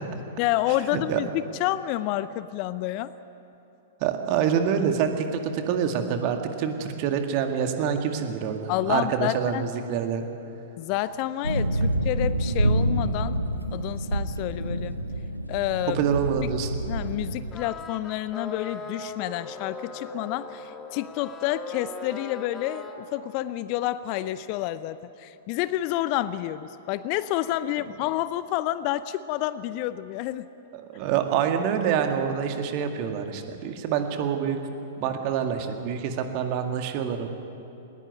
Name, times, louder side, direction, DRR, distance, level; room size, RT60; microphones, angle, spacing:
voice 1, 0.4-3.1 8.7-9.7 10.8-13.4 13.7-15.0 15.5-16.0 16.4-16.5 16.9-30.5, left 14 dB, 40° left, 15 dB, 0.6 m, -29 dB
voice 2, 4.0-10.2 15.9-16.8 30.7-34.6 35.0-37.3, right 8 dB, 40° right, 5 dB, 2.0 m, -26 dB
sound 1, 11.4-17.5, right 1 dB, 85° right, 1.3 m, -27 dB
sound 2, 17.5-23.0, left 3 dB, 15° left, 1.8 m, -39 dB
20.0 x 19.5 x 9.5 m, 2.9 s
figure-of-eight pair, 100°, 0 cm